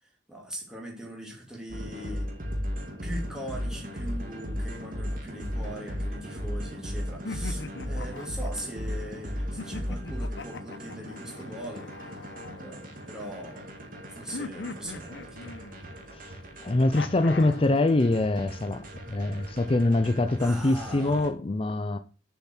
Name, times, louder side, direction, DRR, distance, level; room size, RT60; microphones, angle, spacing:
voice 1, 0.0-2.3 3.0-12.2 12.6-13.7 14.1-15.5 20.4-21.3, right 1 dB, 5° right, 2.6 m, -41 dB
sound 1, 1.7-21.3, equal, 50° right, 2.3 m, -36 dB
sound 2, 5.6-6.7 7.2-9.0 9.6-13.3 14.3-16.1 16.9-17.7, left 3 dB, 80° left, 1.0 m, -41 dB
voice 2, 16.6-22.0, left 2 dB, 30° left, 0.5 m, -24 dB
7.0 x 5.8 x 6.3 m
head